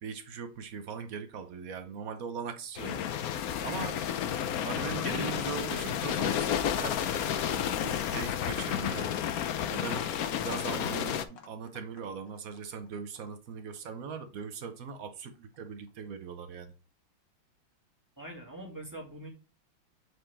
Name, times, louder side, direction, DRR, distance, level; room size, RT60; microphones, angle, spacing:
voice 1, 0.0-3.0 3.6-4.0 4.6-7.3 7.8-9.1 9.7-16.7, right 6 dB, 65° right, 0.9 m, -40 dB
sound 1, 2.8-11.2, left 9 dB, 80° left, 0.8 m, -31 dB
Livestock farm animals working animals, 8.2-14.6 14.9-15.9 16.2-16.3, left 6 dB, 60° left, 1.7 m, -52 dB
voice 2, 18.2-19.3, right 1 dB, 10° right, 2.0 m, -43 dB
7.9 x 4.6 x 3.3 m
omnidirectional pair, 2.3 m